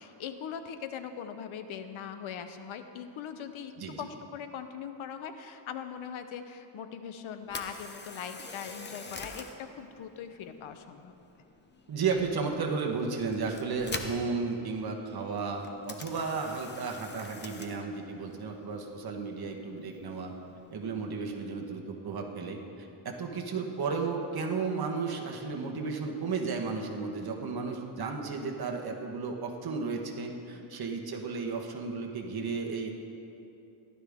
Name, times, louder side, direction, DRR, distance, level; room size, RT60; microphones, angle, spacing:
voice 1, 0.0-11.1 30.5-30.7, left 7 dB, 75° left, 9 dB, 0.9 m, -41 dB
voice 2, 3.8-4.1 11.9-20.3 20.7-32.9, right 4 dB, 50° right, 1 dB, 1.3 m, -34 dB
Camera, 7.4-21.5, left 3 dB, 20° left, 0.7 m, -46 dB
15.5 x 12.0 x 3.6 m, 2.8 s
cardioid pair, 140°, 49 cm